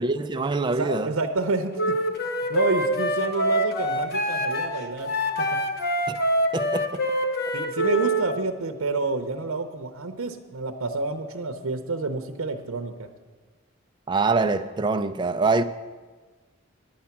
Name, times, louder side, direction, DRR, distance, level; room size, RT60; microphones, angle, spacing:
voice 1, 0.0-1.1 6.1-6.2 6.5-7.0 14.1-15.6, right 3 dB, 20° right, 0.4 m, -24 dB
voice 2, 0.7-5.6 7.5-13.1, right 3 dB, 90° right, 0.7 m, -29 dB
Wind instrument woodwind instrument, 1.8-8.3, equal, 50° left, 0.9 m, -25 dB
10.5 x 9.4 x 5.9 m
head